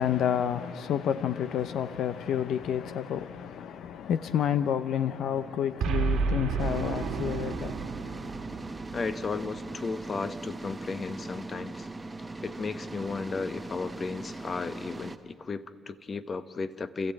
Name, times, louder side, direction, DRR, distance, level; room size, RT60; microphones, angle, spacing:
voice 1, 0.0-7.7, left 9 dB, 75° left, 0.6 m, -29 dB
Boom, 5.8-10.2, right 5 dB, 80° right, 2.1 m, -32 dB
sound 1, 6.6-15.2, right 2 dB, 15° right, 1.0 m, -40 dB
voice 2, 8.9-11.9 12.4-17.1, left 4 dB, 40° left, 1.0 m, -34 dB
29.5 x 14.5 x 8.8 m
cardioid pair, 90°, 0 cm